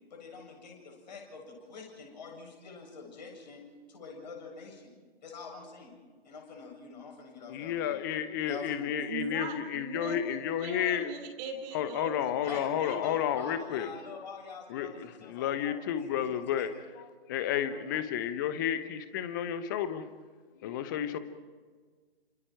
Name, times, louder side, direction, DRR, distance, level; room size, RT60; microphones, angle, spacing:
voice 1, 0.1-3.6 3.9-4.9 5.2-5.9 6.2-8.0 8.4-9.2 12.4-16.7, left 4 dB, 45° left, 1 dB, 7.6 m, -45 dB
voice 2, 7.5-11.1 11.7-13.9 14.7-16.7 17.0-20.0 20.6-21.2, left 10 dB, 20° left, 11 dB, 1.0 m, -32 dB
voice 3, 9.1-13.2, right 4 dB, 20° right, 5 dB, 3.0 m, -40 dB
30.0 x 26.5 x 4.6 m, 1.5 s
figure-of-eight pair, 140°, 32 cm